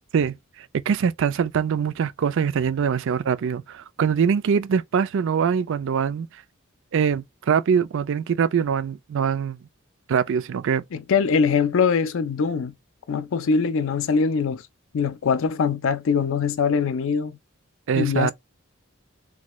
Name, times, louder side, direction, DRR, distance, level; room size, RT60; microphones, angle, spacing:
voice 1, 0.1-6.3 6.9-9.6 10.1-10.8 17.9-18.3, right 7 dB, 65° right, 0.4 m, -23 dB
voice 2, 10.9-12.7 13.1-14.6 14.9-17.4 18.0-18.3, left 5 dB, 65° left, 0.4 m, -22 dB
3.6 x 2.3 x 3.0 m
head